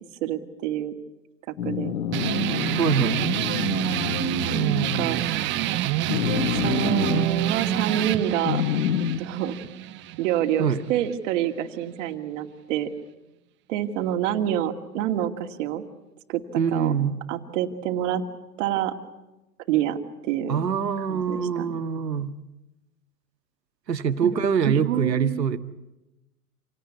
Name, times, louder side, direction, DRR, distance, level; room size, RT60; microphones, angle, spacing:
voice 1, 0.2-1.0 1.5-1.9 4.5-5.2 6.6-8.6 9.2-9.6 10.2-12.9 13.7-15.8 16.3-16.9 17.3-18.2 18.6-18.9 19.7-20.0 20.2-20.6 21.1-21.7 24.2-24.3 24.6-25.5, right 11 dB, 50° right, 6 dB, 2.5 m, -27 dB
sound 1, 1.6-5.2 6.1-7.3 8.4-9.2, left 10 dB, 55° left, 1.2 m, -28 dB
sound 2, 2.1-11.2, right 13 dB, 25° right, 1.0 m, -27 dB
voice 2, 2.8-3.3 10.6-10.8 16.6-17.2 20.5-22.3 23.9-25.6, right 7 dB, 85° right, 10 dB, 1.7 m, -24 dB
27.5 x 18.0 x 9.6 m, 0.99 s
hypercardioid pair, 125°, 48 cm